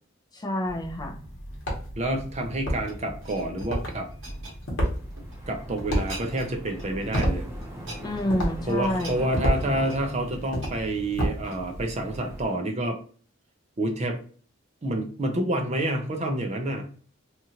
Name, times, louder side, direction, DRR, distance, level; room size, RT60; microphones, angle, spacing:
voice 1, 0.3-1.2 8.0-9.2, left 1 dB, 20° left, 2 dB, 0.4 m, -28 dB
sound 1, 0.6-12.4, equal, 60° left, 1.0 m, -32 dB
voice 2, 2.0-4.1 5.5-7.5 8.7-13.0 13.8-14.2 14.8-16.9, right 1 dB, 35° right, 4 dB, 0.5 m, -28 dB
sound 2, 2.2-5.4 5.8-6.5 6.8-7.3 7.6-11.9 12.4-12.6, right 2 dB, 70° right, 1.2 m, -45 dB
sound 3, 5.0-12.6, right 1 dB, 15° right, 0.9 m, -44 dB
2.8 x 2.4 x 2.8 m, 0.44 s
head